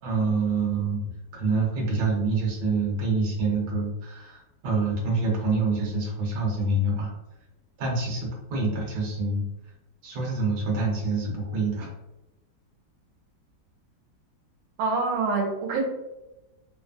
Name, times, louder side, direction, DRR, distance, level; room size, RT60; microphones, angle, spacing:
voice 1, 0.0-7.1 7.8-9.4 10.0-11.9, right 3 dB, 60° right, -3 dB, 1.3 m, -26 dB
voice 2, 14.8-15.8, right 4 dB, 90° right, 0 dB, 1.4 m, -25 dB
3.3 x 2.0 x 2.4 m, 0.99 s
omnidirectional pair, 2.1 m